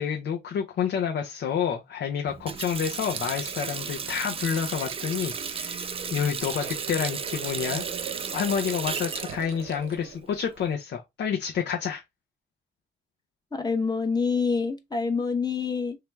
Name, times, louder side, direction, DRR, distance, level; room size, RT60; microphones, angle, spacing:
voice 1, 0.0-12.0, left 7 dB, 65° left, 0.8 m, -29 dB
Water tap faucet, 2.3-10.7, right 6 dB, 30° right, 0.5 m, -34 dB
sound 1, 3.1-10.2, right 8 dB, 85° right, 0.8 m, -43 dB
voice 2, 13.5-16.0, left 5 dB, 20° left, 1.0 m, -26 dB
3.2 x 2.9 x 3.4 m
cardioid pair, 90°, 20 cm